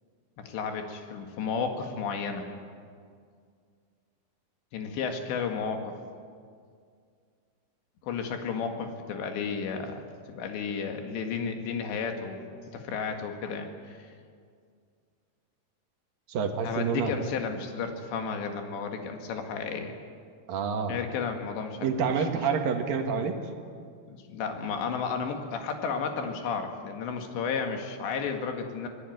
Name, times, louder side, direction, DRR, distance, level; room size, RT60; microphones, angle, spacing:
voice 1, 0.4-2.5 4.7-5.9 8.0-12.4 12.7-14.1 16.6-20.0 20.9-21.9 22.2-22.3 24.1-28.9, left 5 dB, 75° left, 4 dB, 4.1 m, -33 dB
voice 2, 16.3-17.1 20.5-21.0 21.8-23.4, right 6 dB, 60° right, 5 dB, 3.0 m, -28 dB
24.5 x 18.5 x 9.5 m, 2.2 s
omnidirectional pair, 5.2 m